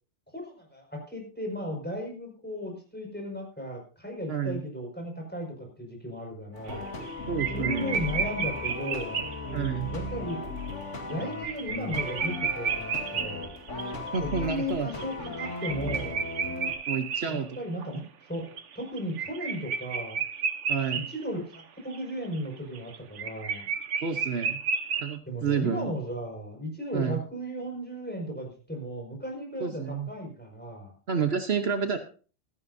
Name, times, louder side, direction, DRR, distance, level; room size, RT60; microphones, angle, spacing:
voice 1, 0.3-6.9 7.5-9.2 9.9-10.5 11.1-13.5 14.2-16.2 17.3-18.0 18.3-20.2 20.9-23.7 25.3-30.9, equal, 10° left, 1 dB, 5.3 m, -35 dB
voice 2, 4.3-4.6 7.3-7.9 9.5-9.9 14.1-14.9 16.9-17.6 20.7-21.0 24.0-24.6 25.0-25.9 26.9-27.2 29.6-30.1 31.1-32.0, right 6 dB, 60° right, 7 dB, 1.2 m, -29 dB
sound 1, 6.5-16.7, left 2 dB, 85° left, 2.7 m, -36 dB
sound 2, 6.7-7.1 7.4-9.7 10.3-10.4 10.7-10.8 11.1-18.0 18.3-21.2 21.5-21.6 21.9-25.2, right 6 dB, 90° right, 1.3 m, -32 dB
16.0 x 14.0 x 2.7 m, 0.37 s
omnidirectional pair, 1.2 m